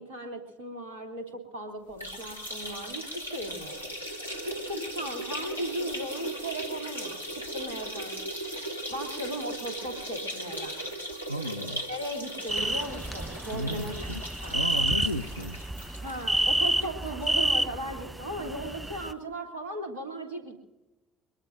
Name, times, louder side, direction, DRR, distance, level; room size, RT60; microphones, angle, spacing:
voice 1, 0.0-3.8 4.4-8.2 8.7-10.8 11.9-14.0 14.4-14.9 16.0-20.6, right 1 dB, 70° right, 2 dB, 3.2 m, -37 dB
sound 1, 1.9-17.3 17.7-17.8 18.1-18.2 19.2-19.3, equal, 85° left, 1.0 m, -38 dB
voice 2, 11.3-11.9 13.5-14.2 14.5-15.6, equal, 90° right, 7 dB, 0.4 m, -33 dB
sound 2, 12.5-19.1, right 1 dB, 10° right, 0.8 m, -30 dB
22.5 x 22.0 x 2.7 m, 1.1 s
figure-of-eight pair, 50°, 0 cm